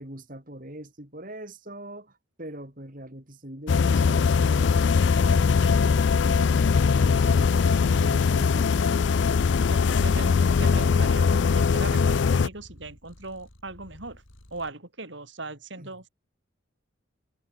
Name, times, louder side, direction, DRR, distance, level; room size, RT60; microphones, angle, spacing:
voice 1, 0.0-6.6 7.0-8.8 9.3-10.3 15.8-16.0, right 1 dB, 45° right, 4.8 m, -43 dB
sound 1, 3.7-12.5, left 5 dB, 65° left, 0.4 m, -21 dB
Purr, 4.3-14.7, equal, 90° left, 5.0 m, -50 dB
voice 2, 9.7-14.2 14.5-16.0, right 2 dB, 65° right, 4.4 m, -39 dB
head